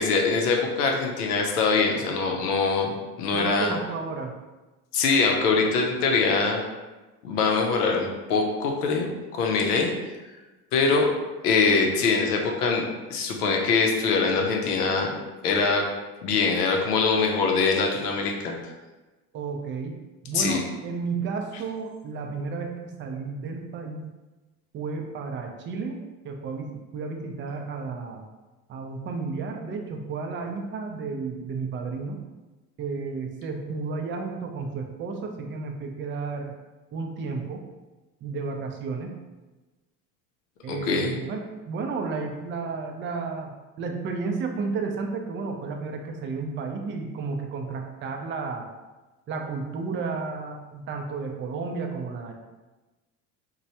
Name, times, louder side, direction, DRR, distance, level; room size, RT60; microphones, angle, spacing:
voice 1, 0.0-2.9 3.2-3.7 4.9-6.6 7.2-9.9 10.7-11.1 11.4-15.1 15.4-15.9 16.2-18.5 20.3-20.6 40.7-41.2, left 4 dB, 85° left, 1 dB, 0.6 m, -23 dB
voice 2, 3.3-4.3 19.3-24.1 24.7-28.2 28.7-32.2 32.8-36.5 36.9-37.7 38.2-39.2 40.6-41.4 41.7-48.7 49.3-52.3, right 4 dB, 30° right, 3 dB, 0.4 m, -32 dB
3.0 x 2.2 x 2.7 m, 1.2 s
hypercardioid pair, 70°, 44 cm